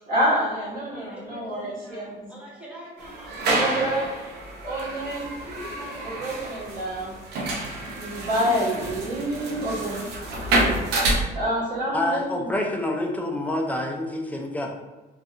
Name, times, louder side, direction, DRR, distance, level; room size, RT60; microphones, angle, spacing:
voice 1, 0.1-2.3 3.4-4.3 4.6-5.3 6.0-7.1 8.0-9.9 11.3-12.5, equal, 55° right, -5 dB, 1.1 m, -27 dB
voice 2, 0.9-3.4 4.8-6.7, equal, 5° right, -6 dB, 0.8 m, -44 dB
sound 1, 3.0-11.1, right 2 dB, 75° right, 0.6 m, -28 dB
voice 3, 11.9-14.7, left 1 dB, 10° left, 1 dB, 0.4 m, -27 dB
2.6 x 2.4 x 2.5 m, 1.2 s
cardioid pair, 110°, 17 cm